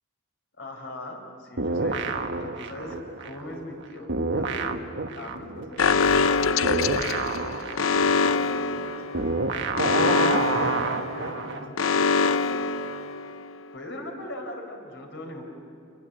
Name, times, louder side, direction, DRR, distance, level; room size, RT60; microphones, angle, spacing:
voice 1, 0.6-4.8 5.1-6.5 8.0-9.4 9.9-12.6 13.7-15.4, left 1 dB, 65° left, 2 dB, 4.8 m, -40 dB
sound 1, 1.6-3.8 4.1-11.7, right 3 dB, 65° right, 1.2 m, -29 dB
Alarm, 5.8-13.5, left 4 dB, 85° left, 0.7 m, -24 dB
28.5 x 22.5 x 8.0 m, 2.6 s
head